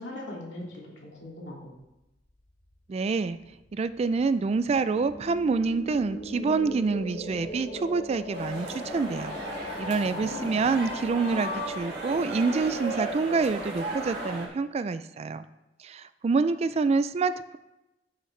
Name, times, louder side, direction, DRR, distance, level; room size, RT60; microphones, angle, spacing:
voice 1, 0.0-1.7 10.0-10.6, left 1 dB, 75° left, -3 dB, 2.3 m, -40 dB
sound 1, 2.4-11.7, left 1 dB, 45° left, 1.1 m, -40 dB
voice 2, 2.9-3.4 3.7-9.4 9.8-15.5 15.8-17.6, right 4 dB, 35° right, 13 dB, 0.3 m, -27 dB
sound 2, 8.3-14.5, right 1 dB, 65° right, 1.8 m, -35 dB
11.0 x 6.4 x 3.2 m, 0.96 s
head